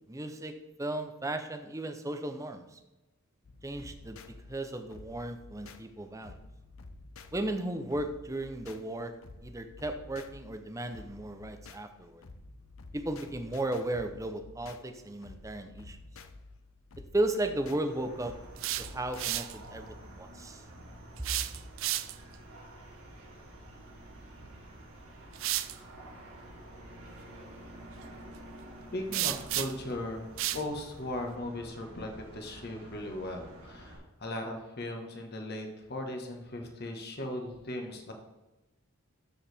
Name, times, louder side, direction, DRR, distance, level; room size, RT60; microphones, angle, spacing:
voice 1, 0.1-2.8 3.6-6.4 7.3-9.1 9.4-12.2 12.9-16.0 17.1-18.3 18.8-20.6, right 1 dB, 15° right, 7 dB, 0.6 m, -35 dB
sound 1, 3.4-19.3, left 2 dB, 70° left, 0.7 m, -51 dB
sound 2, 17.8-34.0, right 1 dB, 85° right, 3.2 m, -50 dB
sound 3, 18.4-19.6 21.2-22.3 24.4-24.6 25.3-25.8 29.1-29.9 30.4-30.7, right 14 dB, 60° right, 0.4 m, -33 dB
voice 2, 28.9-38.1, left 1 dB, 50° left, 3 dB, 1.4 m, -38 dB
12.5 x 4.8 x 3.5 m, 1.0 s
head